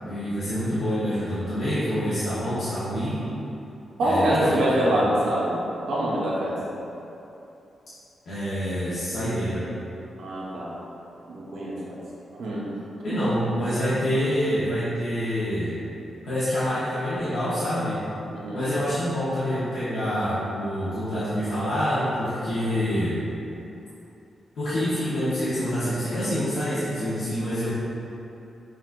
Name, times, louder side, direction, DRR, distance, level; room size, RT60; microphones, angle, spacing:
voice 1, 0.0-3.3 4.0-4.6 8.2-9.7 13.0-15.7 16.2-18.0 18.5-23.2 24.5-27.7, equal, 60° left, -13 dB, 0.8 m, -26 dB
voice 2, 4.0-6.6 10.2-10.7 11.3-12.0 12.3-12.7 18.3-18.6, right 1 dB, 75° right, -7 dB, 0.8 m, -25 dB
6.0 x 2.4 x 2.5 m, 2.9 s
wide cardioid pair, 180°, 0 cm